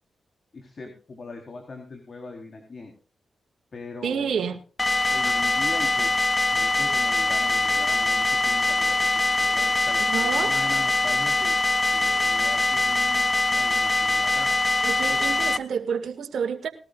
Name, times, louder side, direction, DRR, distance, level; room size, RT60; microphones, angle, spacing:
voice 1, 0.5-2.9 3.7-4.3 5.1-6.1 6.5-11.6 11.9-14.5 15.1-15.2, left 3 dB, 55° left, 2 dB, 3.9 m, -40 dB
voice 2, 4.0-4.6 10.1-10.5 14.8-16.7, right 7 dB, 75° right, 6 dB, 2.1 m, -28 dB
sound 1, 4.8-15.6, left 2 dB, 30° left, 0.9 m, -23 dB
20.5 x 13.0 x 2.5 m, 0.39 s
supercardioid pair, 40°, 0 cm